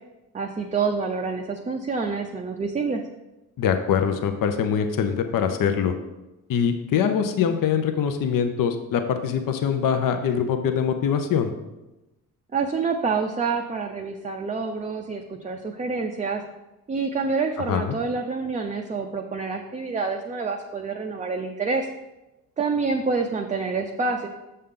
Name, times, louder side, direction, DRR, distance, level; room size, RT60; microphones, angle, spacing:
voice 1, 0.3-3.0 12.5-16.4 16.9-21.9 22.6-24.3, right 4 dB, 20° right, 2 dB, 0.5 m, -27 dB
voice 2, 3.6-5.9 6.5-11.5 17.7-18.0, left 7 dB, 60° left, 7 dB, 0.7 m, -23 dB
6.6 x 5.5 x 3.7 m, 1.0 s
cardioid pair, 90°, 38 cm